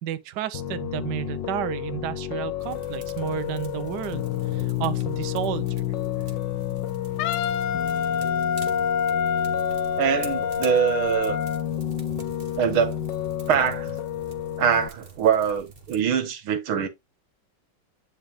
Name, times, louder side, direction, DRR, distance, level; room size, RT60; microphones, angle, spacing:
voice 1, 0.0-5.7, right 11 dB, 65° right, 1.3 m, -31 dB
Piano, 0.5-14.9, left 11 dB, 65° left, 1.6 m, -31 dB
sound 1, 2.6-16.0, right 5 dB, 30° right, 1.4 m, -46 dB
Wind instrument woodwind instrument, 7.2-11.6, left 7 dB, 85° left, 1.6 m, -26 dB
voice 2, 10.0-11.4 12.6-13.0 13.5-13.9 14.6-16.9, right 8 dB, 85° right, 2.2 m, -23 dB
9.6 x 4.7 x 3.1 m
omnidirectional pair, 2.2 m